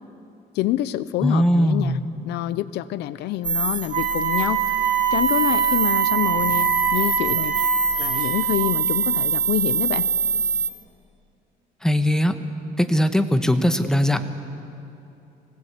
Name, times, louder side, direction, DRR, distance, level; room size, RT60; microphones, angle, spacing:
voice 1, 0.5-2.0 2.3-4.6 5.1-7.5 8.0-10.1, left 14 dB, 80° left, 15 dB, 0.7 m, -26 dB
voice 2, 1.2-2.0 11.8-12.4 12.8-14.2, equal, 5° left, 7 dB, 1.3 m, -20 dB
sound 1, 3.4-10.7, right 5 dB, 25° right, 1.3 m, -24 dB
Wind instrument woodwind instrument, 3.9-8.7, right 7 dB, 55° right, 4.0 m, -24 dB
25.0 x 17.5 x 8.3 m, 2.7 s
cardioid pair, 110°, 17 cm